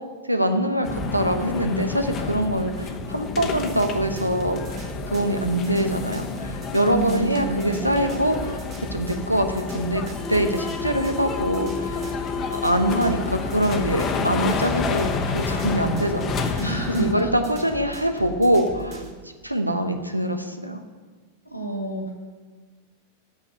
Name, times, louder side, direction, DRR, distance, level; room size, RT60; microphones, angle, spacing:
voice 1, 0.2-8.6 8.9-12.1 12.5-19.0 19.4-20.8, right 1 dB, 90° right, 7 dB, 0.9 m, -24 dB
sound 1, 0.8-17.1, left 5 dB, 30° left, 1.0 m, -29 dB
sound 2, 3.4-19.2, right 4 dB, 35° right, 1.9 m, -39 dB
voice 2, 6.9-7.9 16.6-17.3 21.4-22.1, right 2 dB, 85° left, 2 dB, 1.8 m, -28 dB
8.3 x 7.4 x 8.5 m, 1.4 s
figure-of-eight pair, 90°, 0 cm